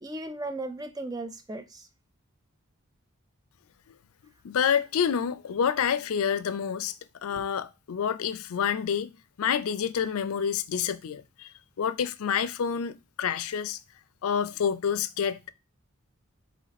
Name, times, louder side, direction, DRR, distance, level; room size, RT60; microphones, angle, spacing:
voice 1, 0.0-1.9 7.3-7.4, right 2 dB, 15° right, 0.4 m, -36 dB
voice 2, 4.4-7.0 7.2-9.1 9.4-13.8 14.2-15.5, left 7 dB, 80° left, 0.4 m, -28 dB
4.1 x 3.1 x 4.0 m
head